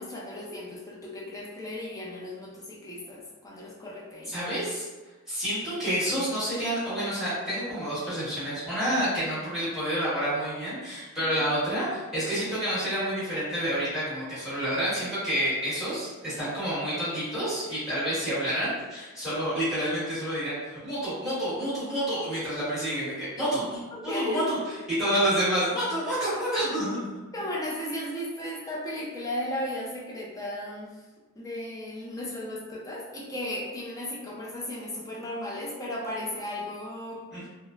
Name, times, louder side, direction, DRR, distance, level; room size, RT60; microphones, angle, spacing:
voice 1, 0.0-4.3 11.2-11.5 23.9-24.5 27.3-30.9 31.4-37.2, left 1 dB, 15° left, -4 dB, 0.4 m, -35 dB
voice 2, 4.3-4.9 5.3-24.6 24.9-27.1 37.3-37.5, equal, ahead, -12 dB, 1.2 m, -29 dB
3.0 x 2.0 x 2.3 m, 1.2 s
head